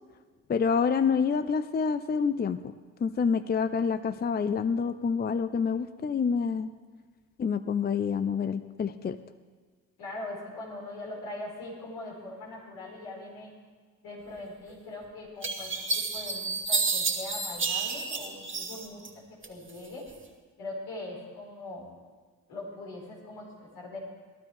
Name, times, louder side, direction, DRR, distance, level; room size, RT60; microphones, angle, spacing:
voice 1, 0.5-2.6 3.0-6.7 7.4-9.2, left 6 dB, 25° left, 13 dB, 0.5 m, -27 dB
voice 2, 10.0-13.5 14.0-20.0 20.6-21.9 22.5-24.0, left 2 dB, 80° left, -4 dB, 5.0 m, -41 dB
sound 1, 14.7-14.8 15.4-19.1 19.4-20.2, right 4 dB, 30° right, 2.0 m, -30 dB
20.0 x 12.5 x 3.6 m, 1.5 s
hypercardioid pair, 55°, 38 cm